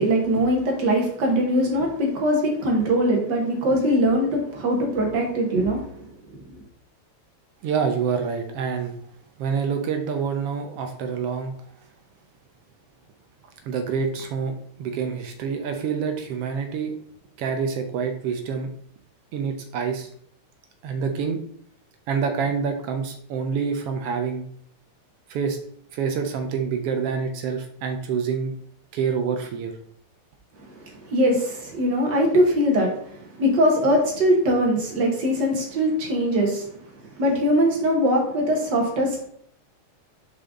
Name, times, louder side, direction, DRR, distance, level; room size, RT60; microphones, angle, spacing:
voice 1, 0.0-6.1 6.3-6.6 30.6-39.3, equal, 50° right, 0 dB, 1.5 m, -22 dB
voice 2, 7.6-9.0 9.4-11.5 13.6-16.9 17.4-18.7 19.3-20.1 20.8-21.4 22.1-24.5 25.3-25.6 25.9-28.5 28.9-29.7, right 6 dB, 75° right, 5 dB, 1.4 m, -27 dB
5.6 x 5.2 x 3.6 m, 0.64 s
omnidirectional pair, 3.3 m